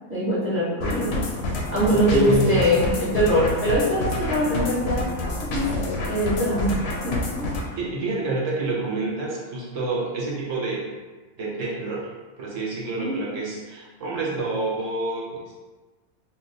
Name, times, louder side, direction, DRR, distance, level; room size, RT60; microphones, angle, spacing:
voice 1, 0.1-1.2 1.7-5.0 5.4-5.7 6.1-6.8 7.0-7.5 13.0-13.2, equal, 10° right, -9 dB, 0.8 m, -22 dB
sound 1, 0.8-7.6, left 2 dB, 60° left, 0.7 m, -28 dB
voice 2, 1.8-2.7 7.8-10.9 11.4-12.1 12.4-15.5, right 3 dB, 65° right, -4 dB, 1.1 m, -28 dB
2.8 x 2.2 x 4.0 m, 1.3 s
omnidirectional pair, 1.5 m